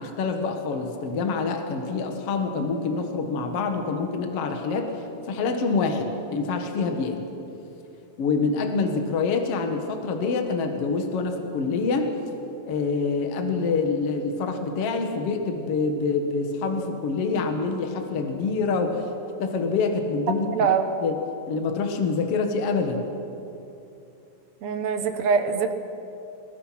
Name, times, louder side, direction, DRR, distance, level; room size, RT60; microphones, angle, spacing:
voice 1, 0.0-4.9 5.3-7.2 8.2-12.1 12.7-19.1 19.4-20.7 21.0-21.2 21.5-23.1, left 4 dB, 55° left, 4 dB, 2.4 m, -26 dB
voice 2, 20.5-20.8 24.6-25.7, right 6 dB, 65° right, 7 dB, 2.3 m, -23 dB
27.0 x 21.5 x 5.9 m, 2.8 s
omnidirectional pair, 3.5 m